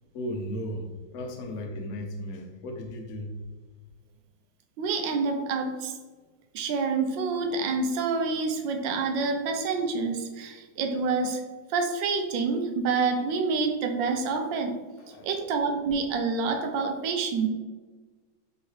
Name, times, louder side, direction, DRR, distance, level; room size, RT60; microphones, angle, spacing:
voice 1, 0.1-3.4 15.0-15.3, equal, 70° left, 3 dB, 0.9 m, -36 dB
voice 2, 4.8-5.9 6.5-11.4 11.7-14.8 15.2-17.5, right 4 dB, 75° right, 5 dB, 1.2 m, -27 dB
5.3 x 2.9 x 3.1 m, 1.3 s
omnidirectional pair, 2.2 m